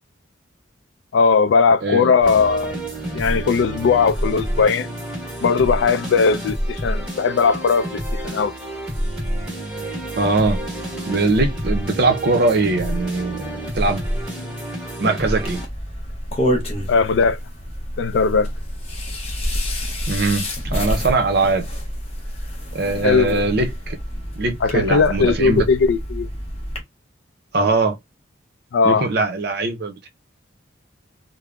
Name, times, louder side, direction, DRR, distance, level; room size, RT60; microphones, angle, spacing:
voice 1, 1.1-2.8 3.1-4.9 5.4-8.5 16.9-17.4 18.0-18.5 23.0-23.4 24.6-26.3 28.7-29.1, left 5 dB, 60° left, 0.3 m, -18 dB
voice 2, 1.8-2.1 10.2-10.6 11.1-13.4 13.7-14.0 15.0-15.6 20.1-21.7 22.7-24.0 24.4-25.7 27.5-28.0 28.8-30.1, right 3 dB, 50° right, 0.5 m, -21 dB
sound 1, 2.2-15.7, right 1 dB, 5° right, 1.2 m, -28 dB
sound 2, 15.4-26.8, equal, 30° left, 0.7 m, -28 dB
3.4 x 2.0 x 2.3 m
head